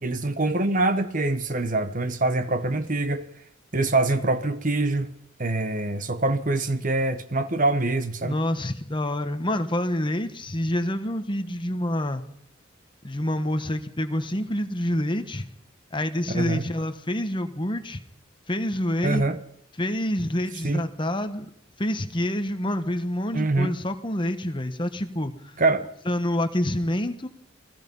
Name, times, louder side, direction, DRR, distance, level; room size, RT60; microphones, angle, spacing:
voice 1, 0.0-3.3 3.7-5.1 5.4-8.4 16.3-16.6 19.0-19.4 20.6-20.8 23.3-23.7 25.6-25.8, right 2 dB, 40° right, 1.3 m, -24 dB
voice 2, 8.2-12.2 13.0-15.5 15.9-18.0 18.5-19.2 19.8-21.4 21.8-25.5 26.1-27.3, left 1 dB, 25° left, 1.3 m, -27 dB
29.0 x 19.5 x 5.5 m
head